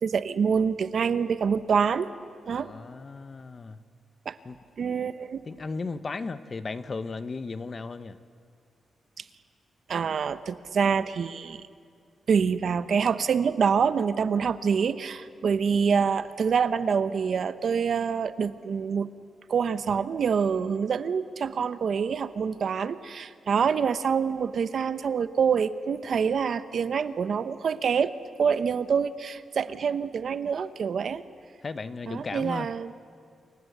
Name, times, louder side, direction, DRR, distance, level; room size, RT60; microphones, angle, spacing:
voice 1, 0.0-2.1 2.5-2.7 4.2-4.3 4.8-5.4 9.9-11.7 12.3-19.1 19.5-28.1 28.4-31.2 32.1-32.9, right 6 dB, 55° right, 13 dB, 0.9 m, -26 dB
voice 2, 2.5-3.8 4.4-4.6 5.5-8.2 31.6-32.7, left 4 dB, 35° left, 12 dB, 0.9 m, -35 dB
28.0 x 24.5 x 8.0 m, 2.2 s
wide cardioid pair, 145°, 0 cm